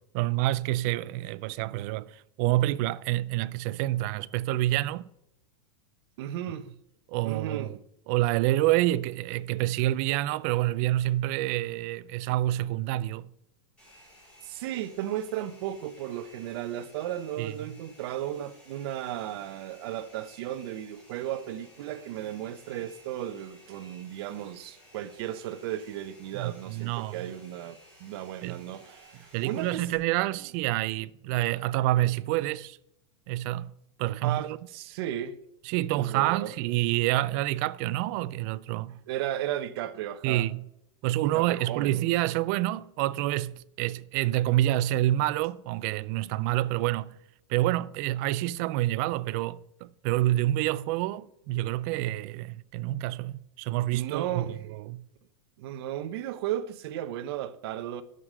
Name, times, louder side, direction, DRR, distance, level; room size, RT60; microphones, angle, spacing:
voice 1, 0.0-5.1 7.1-7.8 8.1-13.3 17.4-17.8 26.3-27.3 28.4-28.6 29.3-32.8 33.3-33.7 34.0-34.6 35.7-39.0 40.2-40.6 41.0-47.2 47.5-54.4 54.7-55.0, right 15 dB, 35° right, 0.4 m, -28 dB
voice 2, 6.2-6.7 7.2-7.8 14.4-29.9 34.2-35.4 35.9-36.5 39.1-40.5 41.3-42.1 53.9-54.6 55.6-58.0, right 11 dB, 50° right, 0.7 m, -35 dB
Domestic sounds home sounds, 13.8-30.0, equal, 5° left, 4.4 m, -56 dB
11.0 x 6.6 x 6.5 m
supercardioid pair, 165°, 16 cm